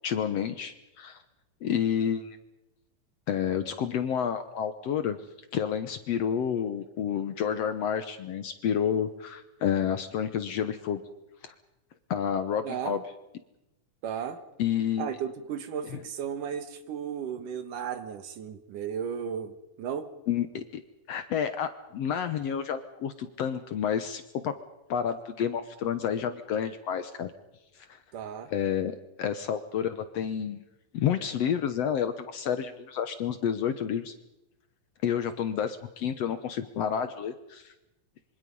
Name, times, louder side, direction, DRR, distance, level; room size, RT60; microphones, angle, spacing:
voice 1, 0.0-1.2 1.6-2.4 3.3-5.2 5.5-11.0 11.4-11.5 12.1-13.0 14.6-15.1 20.3-20.8 21.1-24.5 24.9-27.3 28.5-30.6 30.9-34.1 35.0-37.7, left 8 dB, 65° left, 10 dB, 1.8 m, -29 dB
voice 2, 12.6-13.0 14.0-14.4 15.0-20.1 28.1-28.5, right 8 dB, 75° right, 10 dB, 3.1 m, -35 dB
26.0 x 25.0 x 5.5 m, 0.92 s
omnidirectional pair, 3.8 m